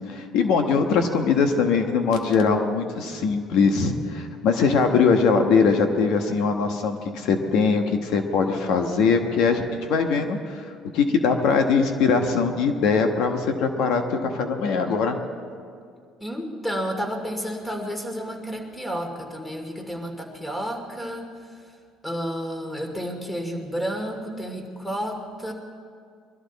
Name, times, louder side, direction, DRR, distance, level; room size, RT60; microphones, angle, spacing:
voice 1, 0.1-9.6 9.9-10.7 10.9-15.2, left 5 dB, 70° left, 5 dB, 1.3 m, -21 dB
voice 2, 16.2-21.3 22.0-25.5, equal, 10° left, 3 dB, 2.5 m, -31 dB
22.5 x 13.0 x 4.2 m, 2.2 s
supercardioid pair, 95°, 0 cm